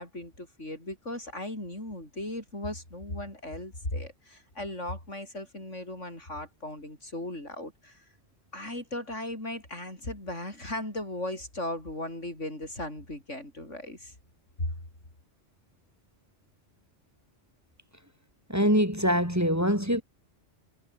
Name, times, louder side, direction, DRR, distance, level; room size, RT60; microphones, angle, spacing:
voice 1, 0.0-8.0 8.5-14.1 14.6-14.7, left 1 dB, 75° left, 8.5 m, -37 dB
voice 2, 18.5-20.0, equal, 15° right, 5.3 m, -24 dB
omnidirectional pair, 1.2 m